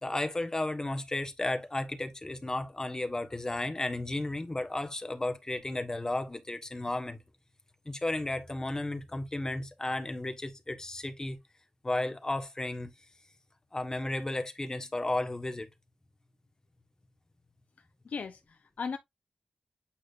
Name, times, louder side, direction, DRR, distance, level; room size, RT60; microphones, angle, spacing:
voice 1, 0.0-7.2 7.8-11.4 11.8-12.9 13.7-15.7, left 2 dB, 25° left, 1.4 m, -33 dB
voice 2, 17.8-19.0, left 5 dB, 80° left, 0.6 m, -38 dB
8.6 x 5.1 x 2.5 m
wide cardioid pair, 80°, 3 cm